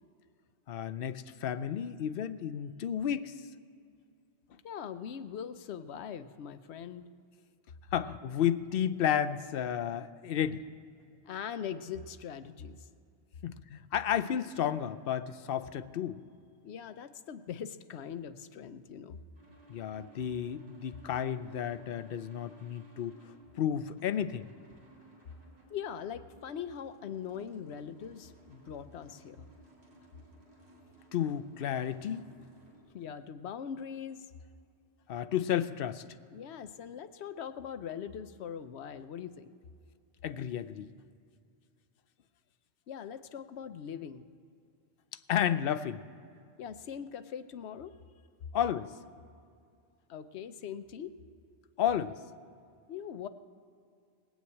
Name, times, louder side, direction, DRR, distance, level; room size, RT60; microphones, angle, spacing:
voice 1, 0.7-3.3 7.9-10.6 13.4-16.2 19.7-23.1 23.5-24.5 31.1-32.2 35.1-36.0 40.2-40.9 45.3-46.0 48.5-48.9 51.8-52.2, left 9 dB, 65° left, 12 dB, 0.8 m, -32 dB
voice 2, 4.6-7.1 11.2-12.9 16.6-19.2 25.7-29.5 32.9-34.3 36.3-39.5 42.9-44.3 46.6-48.0 50.1-51.2 52.9-53.3, left 8 dB, 90° left, 11 dB, 1.0 m, -41 dB
sound 1, 19.3-32.8, right 2 dB, 85° right, 4.2 m, -59 dB
19.5 x 7.2 x 8.5 m, 2.4 s
omnidirectional pair, 1.1 m